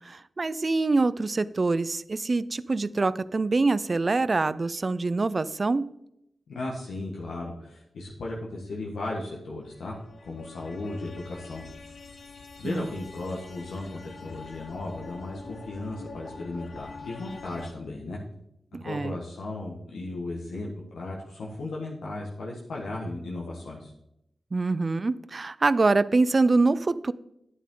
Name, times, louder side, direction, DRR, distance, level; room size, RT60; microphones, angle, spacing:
voice 1, 0.0-5.9 12.6-12.8 18.7-19.2 24.5-27.1, right 3 dB, 45° right, 17 dB, 0.4 m, -25 dB
voice 2, 6.5-9.9 10.2-11.6 12.6-18.2 18.8-23.9, left 2 dB, 90° left, -3 dB, 1.4 m, -36 dB
sound 1, 9.6-17.7, left 4 dB, 65° left, 1.1 m, -45 dB
9.7 x 8.4 x 3.8 m, 0.79 s
cardioid pair, 50°, 0 cm